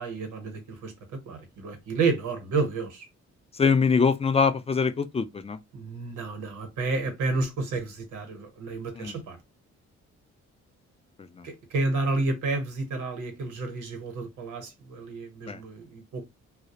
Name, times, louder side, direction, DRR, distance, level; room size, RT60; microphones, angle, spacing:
voice 1, 0.0-3.1 5.7-9.4 11.4-16.2, right 3 dB, 85° right, 0.8 m, -30 dB
voice 2, 3.5-5.6 9.0-9.2 11.4-11.5 15.5-15.6, left 5 dB, 20° left, 0.3 m, -23 dB
2.3 x 2.0 x 2.7 m
cardioid pair, 60°, 30 cm